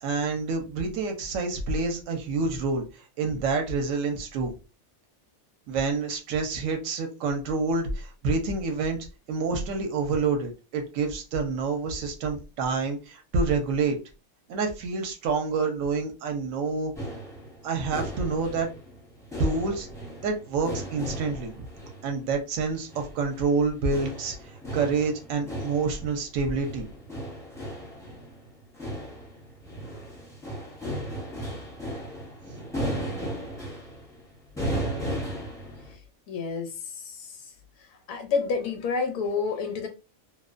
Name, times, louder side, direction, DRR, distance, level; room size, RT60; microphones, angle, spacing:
voice 1, 0.0-2.8 3.2-4.5 5.7-9.0 9.3-14.0 14.5-16.9 17.6-18.7 19.4-19.9 20.2-21.7 22.0-24.3 24.7-26.9, right 4 dB, 75° right, 0.9 m, -27 dB
sound 1, 17.0-35.9, equal, 5° left, 0.4 m, -36 dB
voice 2, 36.3-37.4 38.1-39.9, left 5 dB, 75° left, 1.0 m, -29 dB
2.5 x 2.1 x 2.4 m
omnidirectional pair, 1.5 m